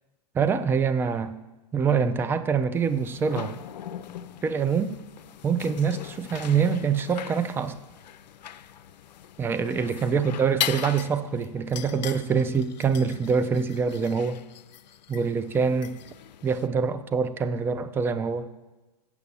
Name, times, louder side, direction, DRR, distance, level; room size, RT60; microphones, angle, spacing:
voice 1, 0.3-1.3 1.7-3.6 4.4-4.9 5.4-7.8 9.4-14.4 15.1-16.0 16.4-18.5, right 6 dB, 10° right, 12 dB, 0.3 m, -25 dB
sound 1, 2.7-16.7, left 10 dB, 90° left, 0.5 m, -39 dB
8.1 x 5.9 x 6.8 m, 1.1 s
hypercardioid pair, 130°, 21 cm